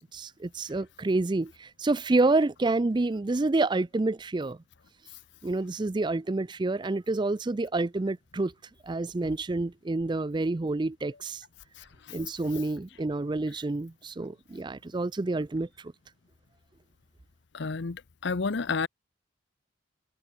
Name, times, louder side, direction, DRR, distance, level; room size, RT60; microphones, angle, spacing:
voice 1, 0.0-4.6 5.4-8.5 8.8-11.4 12.1-15.9, right 2 dB, 25° right, 0.4 m, -28 dB
voice 2, 17.5-18.9, left 4 dB, 60° left, 0.7 m, -30 dB
head